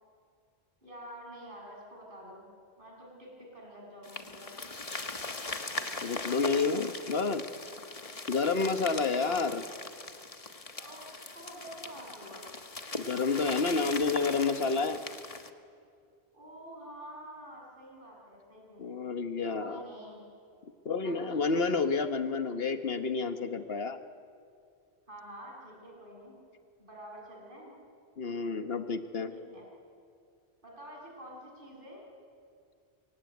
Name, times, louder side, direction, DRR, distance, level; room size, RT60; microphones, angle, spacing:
voice 1, 0.8-2.5 2.8-4.6 9.3-9.4 10.8-11.1 11.3-12.5 16.3-19.0 19.6-20.2 21.0-21.6 25.1-26.4 26.8-27.8 29.3-29.6 30.6-32.1, right 1 dB, 55° right, -2 dB, 7.4 m, -48 dB
sound 1, 4.0-15.5, left 3 dB, 35° left, 1.3 m, -40 dB
voice 2, 6.0-7.4 8.3-9.6 13.1-15.0 18.8-19.8 20.8-24.0 28.2-29.3, left 4 dB, 70° left, 8 dB, 1.4 m, -29 dB
24.5 x 23.0 x 9.4 m, 2.3 s
omnidirectional pair, 1.1 m